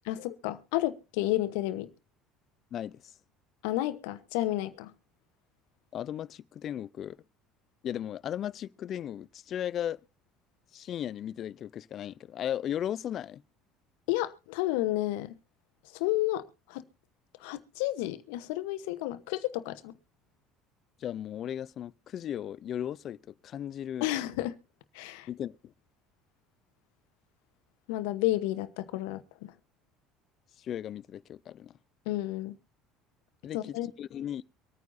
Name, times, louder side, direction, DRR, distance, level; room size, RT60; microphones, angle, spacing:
voice 1, 0.1-1.9 3.6-4.9 14.1-15.3 15.9-16.8 17.4-19.9 24.0-24.6 24.9-25.3 27.9-29.5 32.1-32.6 33.5-33.9, left 16 dB, 75° left, 1.0 m, -31 dB
voice 2, 2.7-3.0 5.9-7.2 7.8-10.0 10.7-13.4 21.0-24.1 25.3-25.7 30.6-31.7 33.4-34.4, left 10 dB, 50° left, 0.5 m, -36 dB
24.5 x 9.3 x 2.7 m
hypercardioid pair, 70°, 0 cm